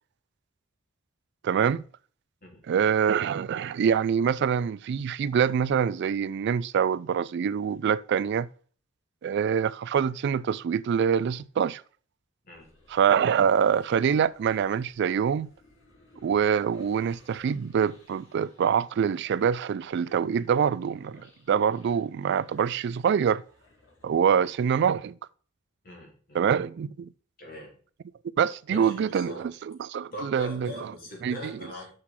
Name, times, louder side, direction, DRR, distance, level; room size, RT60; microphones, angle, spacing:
voice 1, 1.4-1.8 2.7-8.5 9.2-11.8 12.9-15.5 16.2-23.4 24.0-25.2 26.3-27.1 28.4-30.9 31.2-31.6, right 7 dB, 55° right, 0.3 m, -25 dB
voice 2, 2.4-2.9 12.4-12.7 25.8-26.4 27.4-27.7 28.7-29.5 30.1-31.9, left 1 dB, 45° left, 3.4 m, -41 dB
sound 1, 12.5-24.5, left 2 dB, 65° left, 3.1 m, -59 dB
6.5 x 5.9 x 5.6 m
head